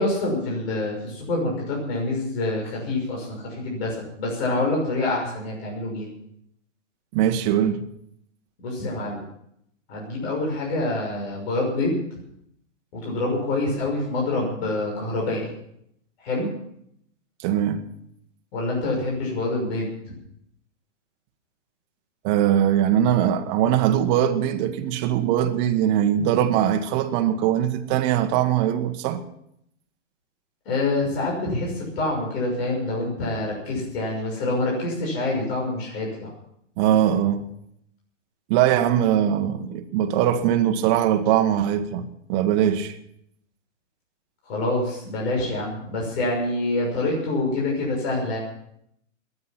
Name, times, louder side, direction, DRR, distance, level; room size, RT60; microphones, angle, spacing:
voice 1, 0.0-6.1 8.6-9.2 9.9-12.0 12.9-15.5 16.2-16.5 18.5-20.1 30.6-36.3 44.4-48.4, left 2 dB, 55° left, 6.3 m, -26 dB
voice 2, 7.1-7.8 17.4-17.9 22.2-29.2 36.8-37.4 38.5-42.9, right 10 dB, 35° right, 1.5 m, -21 dB
22.0 x 9.8 x 5.9 m
hypercardioid pair, 150°, 38 cm